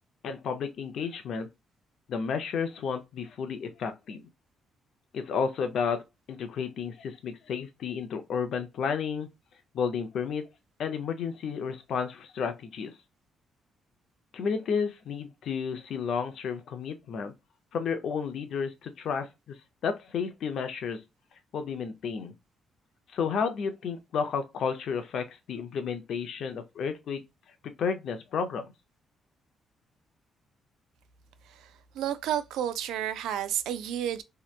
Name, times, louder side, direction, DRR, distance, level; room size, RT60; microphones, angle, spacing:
voice 1, 0.2-1.5 2.1-4.2 5.1-6.0 6.3-9.3 9.7-10.5 10.8-12.9 14.3-17.3 17.7-19.6 19.8-21.0 21.5-22.3 23.1-27.2 27.8-28.7, left 6 dB, 70° left, 0.5 m, -32 dB
voice 2, 31.5-34.2, right 10 dB, 85° right, 0.3 m, -31 dB
2.8 x 2.1 x 2.4 m
cardioid pair, 90°, 0 cm